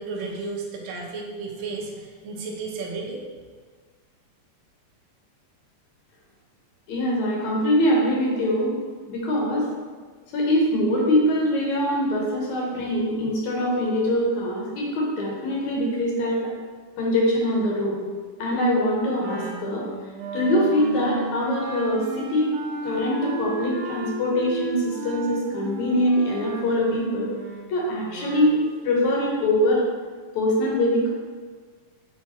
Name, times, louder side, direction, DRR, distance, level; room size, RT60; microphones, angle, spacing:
voice 1, 0.0-3.2, right 3 dB, 70° right, -1 dB, 1.2 m, -33 dB
voice 2, 6.9-8.7 9.1-9.7 10.3-16.4 17.0-18.0 18.4-19.8 20.3-22.5 22.8-27.3 27.7-29.8 30.3-31.1, left 1 dB, 70° left, -3 dB, 2.5 m, -23 dB
Wind instrument woodwind instrument, 19.2-28.7, right 3 dB, 85° right, 2.2 m, -34 dB
5.0 x 4.7 x 4.3 m, 1.5 s
omnidirectional pair, 3.5 m